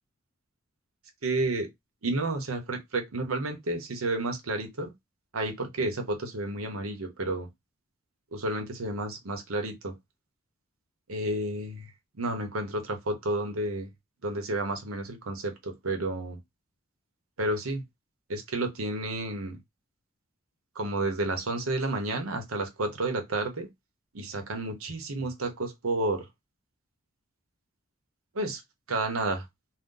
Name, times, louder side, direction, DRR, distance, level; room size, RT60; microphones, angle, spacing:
voice 1, 1.2-1.7 2.0-4.9 5.3-7.5 8.3-9.9 11.1-11.9 12.2-13.9 14.2-16.4 17.4-17.8 18.3-19.6 20.7-23.7 24.1-26.3 28.3-28.6 28.9-29.4, right 2 dB, 85° right, 0.8 m, -31 dB
2.6 x 2.1 x 3.6 m
head